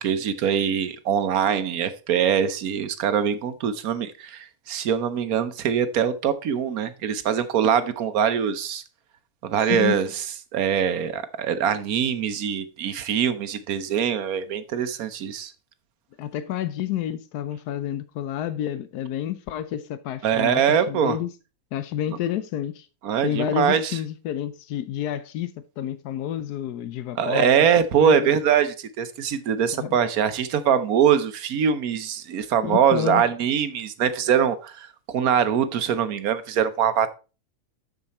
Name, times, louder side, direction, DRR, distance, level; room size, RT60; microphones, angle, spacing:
voice 1, 0.0-8.8 9.4-10.2 10.5-15.5 20.2-21.2 23.0-24.0 27.2-37.1, right 8 dB, 70° right, 1.2 m, -23 dB
voice 2, 16.2-21.3 21.7-22.9 23.2-27.5 28.0-28.3 29.7-30.0 32.6-33.2, left 11 dB, 90° left, 1.2 m, -29 dB
7.2 x 6.7 x 4.2 m
omnidirectional pair, 1.6 m